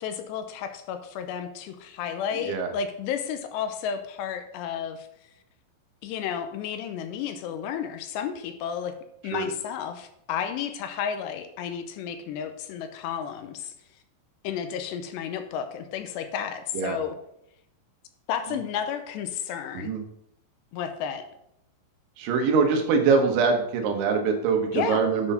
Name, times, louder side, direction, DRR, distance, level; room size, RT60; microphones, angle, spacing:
voice 1, 0.0-5.1 6.0-8.9 9.2-13.7 14.4-17.2 18.3-19.9 20.7-21.2 24.7-25.0, left 8 dB, 80° left, 8 dB, 2.7 m, -32 dB
voice 2, 22.2-25.3, right 5 dB, 90° right, 4 dB, 3.6 m, -23 dB
9.8 x 4.2 x 5.4 m, 0.77 s
omnidirectional pair, 5.2 m